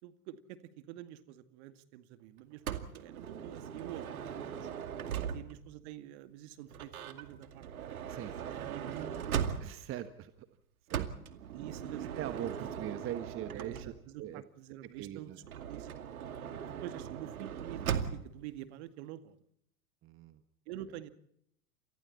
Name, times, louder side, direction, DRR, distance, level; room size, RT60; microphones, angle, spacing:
voice 1, 0.0-4.7 5.3-9.8 11.5-12.8 13.5-15.9 16.2-16.6 16.8-19.4 20.7-21.1, right 12 dB, 45° right, 11 dB, 2.2 m, -48 dB
Motor vehicle (road) / Sliding door, 2.7-5.7 6.7-10.0 10.9-14.2 15.4-18.4, right 8 dB, 65° right, 2.4 m, -39 dB
voice 2, 9.6-10.5 10.9-11.1 12.0-13.9 14.2-14.4 15.0-15.4 20.0-20.4, right 12 dB, 30° right, 10 dB, 1.5 m, -41 dB
30.0 x 27.5 x 4.2 m, 0.73 s
figure-of-eight pair, 95°, 46 cm